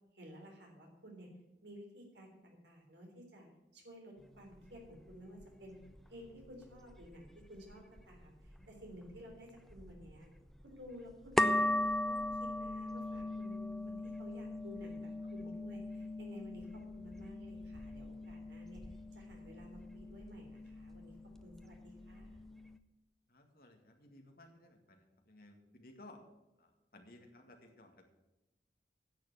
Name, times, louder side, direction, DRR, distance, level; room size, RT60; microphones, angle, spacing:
voice 1, 0.1-1.3 1.6-5.8 6.1-10.3 10.6-21.1 21.4-22.4, equal, 70° right, 1 dB, 3.6 m, -54 dB
sound 1, 4.2-22.8, left 1 dB, ahead, 0.5 m, -40 dB
voice 2, 23.3-26.2 26.6-28.0, left 1 dB, 50° left, 3 dB, 2.0 m, -58 dB
10.5 x 7.0 x 8.7 m, 1.0 s
head